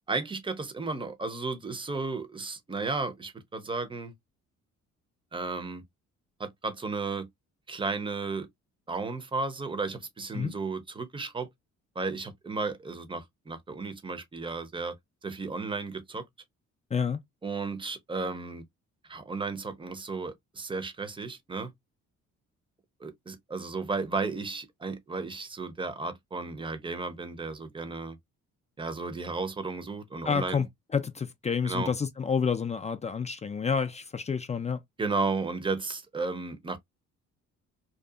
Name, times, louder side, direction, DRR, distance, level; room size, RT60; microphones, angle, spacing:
voice 1, 0.1-4.1 5.3-5.8 6.4-7.3 7.7-8.5 8.9-11.5 12.0-14.9 15.2-16.2 17.4-18.6 19.1-21.7 23.0-28.2 28.8-30.6 31.6-31.9 35.0-36.8, right 3 dB, 15° right, 0.6 m, -34 dB
voice 2, 30.2-30.7 30.9-34.8, left 6 dB, 25° left, 0.3 m, -29 dB
2.7 x 2.3 x 2.3 m
cardioid pair, 90°, 30 cm